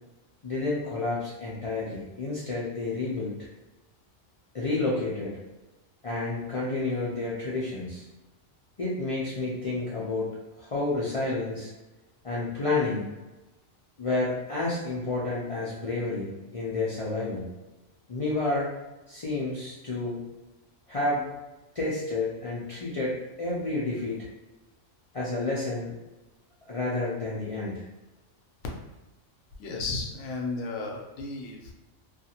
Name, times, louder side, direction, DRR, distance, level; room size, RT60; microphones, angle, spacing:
voice 1, 0.4-3.3 4.5-5.3 6.0-8.0 8.8-11.7 12.2-13.1 14.0-17.4 18.1-18.7 19.1-20.2 20.9-21.2 21.7-24.3 25.1-25.9 26.7-27.8, left 2 dB, 60° left, -7 dB, 0.3 m, -30 dB
voice 2, 29.6-31.7, left 3 dB, 80° left, 0 dB, 0.9 m, -34 dB
2.5 x 2.4 x 2.7 m, 1.0 s
omnidirectional pair, 1.3 m